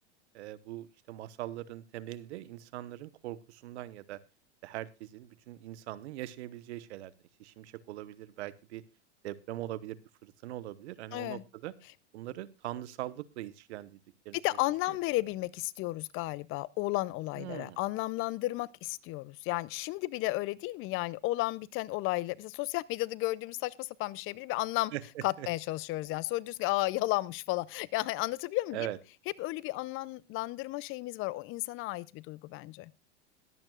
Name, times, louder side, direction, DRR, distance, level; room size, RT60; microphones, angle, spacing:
voice 1, 0.3-4.2 4.6-7.1 7.4-8.8 9.2-11.7 12.1-14.0 14.2-14.4 17.3-17.8 24.9-25.5 28.7-29.0, right 14 dB, 70° right, 1.1 m, -41 dB
voice 2, 11.1-11.4 14.3-24.9 25.2-28.9 29.4-32.9, left 19 dB, 35° left, 0.5 m, -33 dB
21.5 x 8.9 x 2.3 m
hypercardioid pair, 110°, 35 cm